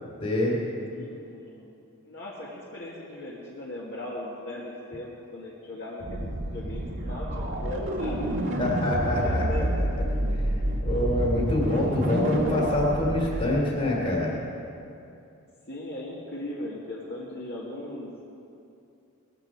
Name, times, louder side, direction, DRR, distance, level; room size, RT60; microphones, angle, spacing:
voice 1, 0.2-0.6 8.6-9.4 10.8-14.3, left 1 dB, 35° left, -4 dB, 2.7 m, -25 dB
voice 2, 0.9-1.7 2.0-8.8 9.0-9.9 15.7-18.2, left 1 dB, 50° left, -6 dB, 2.0 m, -38 dB
sound 1, 6.0-13.6, right 1 dB, 55° right, 2.0 m, -28 dB
18.5 x 15.0 x 4.7 m, 2.7 s
head